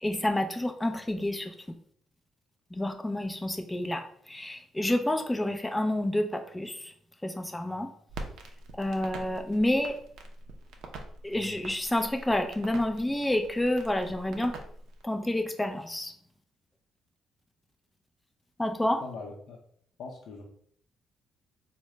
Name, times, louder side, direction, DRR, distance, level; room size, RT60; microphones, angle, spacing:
voice 1, 0.0-1.5 2.7-6.8 7.2-7.9 8.8-10.0 11.2-14.5 15.0-16.1 18.6-19.0, left 1 dB, 10° left, 5 dB, 0.4 m, -29 dB
Crackle, 8.1-15.0, right 2 dB, 85° right, 0.5 m, -44 dB
voice 2, 19.0-19.6 20.0-20.4, left 3 dB, 75° left, 0 dB, 0.5 m, -41 dB
3.6 x 2.1 x 3.2 m, 0.62 s
cardioid pair, 90°, 0 cm